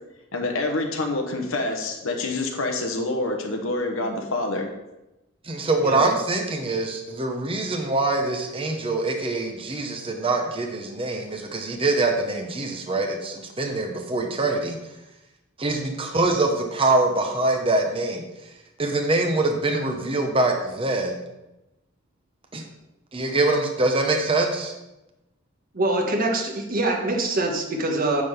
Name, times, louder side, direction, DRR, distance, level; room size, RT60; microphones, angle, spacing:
voice 1, 0.3-4.7, left 2 dB, 85° left, 3 dB, 1.2 m, -27 dB
voice 2, 5.4-14.8 15.6-18.2 18.8-21.2 22.5-22.6 23.1-24.7, right 2 dB, 25° right, 3 dB, 0.9 m, -24 dB
voice 3, 25.7-28.2, right 2 dB, 45° right, 1 dB, 1.4 m, -24 dB
10.0 x 3.8 x 6.7 m, 0.97 s
head